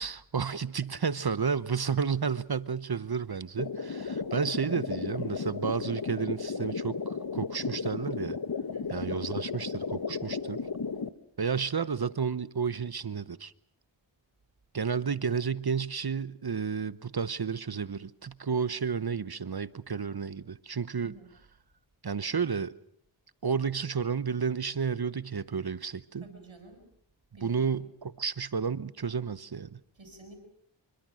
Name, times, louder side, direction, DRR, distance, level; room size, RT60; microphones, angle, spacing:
voice 1, 0.0-8.4 8.9-10.6 11.4-13.5 14.7-21.1 22.0-22.7 23.4-26.2 27.4-29.8, right 6 dB, 50° right, 1.0 m, -31 dB
sound 1, 3.6-11.1, left 5 dB, 50° left, 1.3 m, -34 dB
voice 2, 8.7-9.1 21.0-21.3 26.2-26.8 27.3-27.7 29.9-30.4, right 2 dB, 75° right, 7.8 m, -49 dB
26.5 x 24.5 x 6.4 m
wide cardioid pair, 65°, 47 cm